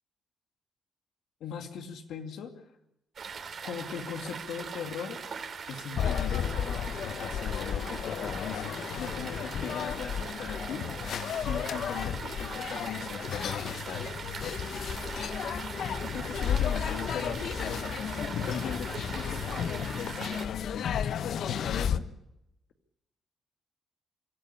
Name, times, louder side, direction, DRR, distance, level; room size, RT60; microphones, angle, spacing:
voice 1, 1.4-2.6 3.6-5.2 5.7-10.9 11.4-14.1 16.0-20.9 21.3-22.1, left 7 dB, 85° left, 5 dB, 2.3 m, -39 dB
sound 1, 3.2-20.5, right 6 dB, 50° right, 3.3 m, -41 dB
sound 2, 5.9-22.0, left 8 dB, 70° left, 0.8 m, -33 dB
sound 3, 14.4-20.0, left 5 dB, 50° left, 2.5 m, -41 dB
25.0 x 13.5 x 9.9 m, 0.87 s
cardioid pair, 120°, 0 cm